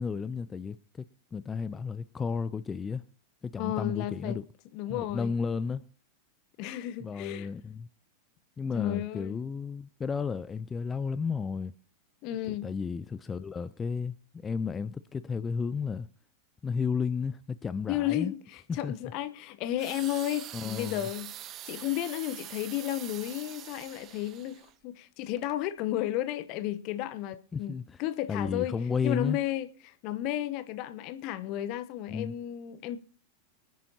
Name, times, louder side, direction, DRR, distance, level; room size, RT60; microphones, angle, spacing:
voice 1, 0.0-3.0 3.4-4.4 4.9-5.8 7.0-7.9 8.6-11.7 12.4-16.1 16.6-18.3 18.7-18.9 20.5-21.1 27.5-28.0 28.3-29.4 32.1-32.3, left 5 dB, 15° left, 0.5 m, -33 dB
voice 2, 3.6-4.4 4.7-5.4 6.6-7.5 8.7-9.4 12.2-12.7 17.9-21.3 21.6-28.8 29.0-33.0, left 13 dB, 40° left, 1.0 m, -33 dB
sound 1, 19.8-24.7 25.4-25.5, right 12 dB, 35° right, 0.7 m, -44 dB
25.5 x 9.3 x 2.8 m
figure-of-eight pair, 90°, 0 cm